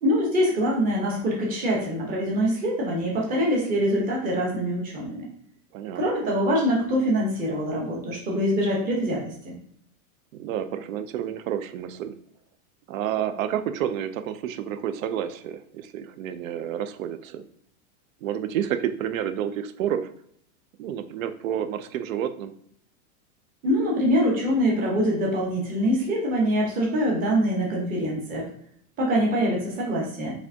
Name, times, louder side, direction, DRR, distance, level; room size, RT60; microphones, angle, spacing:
voice 1, 0.0-5.3 5.9-9.5 23.6-28.5 29.0-30.3, equal, 20° right, -3 dB, 1.0 m, -24 dB
voice 2, 5.7-6.3 10.3-12.2 12.9-17.4 18.2-20.1 20.8-22.5, right 10 dB, 65° right, 10 dB, 0.6 m, -30 dB
4.7 x 3.4 x 2.8 m, 0.67 s
supercardioid pair, 170°, 44 cm